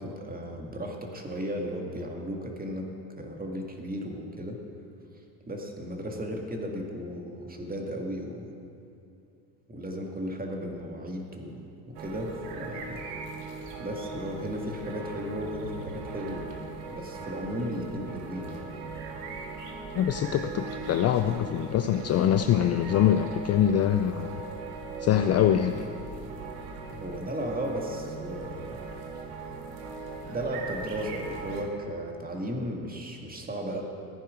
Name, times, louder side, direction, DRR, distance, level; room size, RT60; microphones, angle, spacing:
voice 1, 0.0-2.9 3.2-4.6 5.5-8.5 9.7-13.0 13.8-16.5 16.9-18.6 26.9-28.8 30.2-33.8, equal, 15° right, 1 dB, 2.1 m, -35 dB
sound 1, 11.9-31.6, right 4 dB, 70° right, 1.7 m, -39 dB
voice 2, 19.9-24.4 25.0-25.9, left 10 dB, 35° left, 9 dB, 0.5 m, -24 dB
14.5 x 10.0 x 5.2 m, 2.7 s
hypercardioid pair, 70°, 49 cm